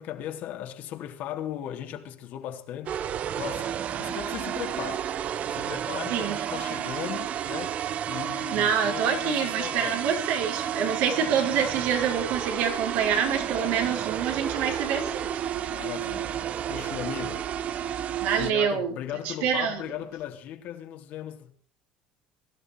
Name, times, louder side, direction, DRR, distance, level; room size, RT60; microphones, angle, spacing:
voice 1, 0.0-3.0 3.4-3.7 4.0-5.1 5.5-7.8 8.1-10.1 15.6-16.3 16.7-17.5 18.4-21.6, left 11 dB, 60° left, 3.3 m, -37 dB
sound 1, 2.9-18.5, right 10 dB, 45° right, 1.0 m, -31 dB
voice 2, 8.5-15.4 18.2-18.9 19.2-19.8, right 7 dB, 70° right, 5.3 m, -26 dB
22.5 x 12.5 x 4.8 m
supercardioid pair, 115°, 3 cm